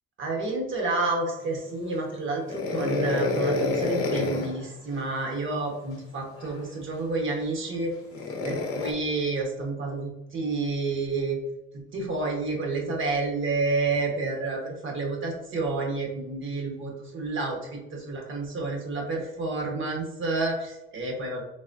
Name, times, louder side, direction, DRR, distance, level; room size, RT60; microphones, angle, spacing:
voice 1, 0.2-7.9 8.4-11.4 11.7-21.4, right 3 dB, 40° right, 0 dB, 1.3 m, -29 dB
sound 1, 2.5-4.6 6.4-6.5 8.1-8.9, left 3 dB, 50° left, 0.7 m, -28 dB
4.0 x 3.6 x 2.6 m, 0.98 s
cardioid pair, 125°, 29 cm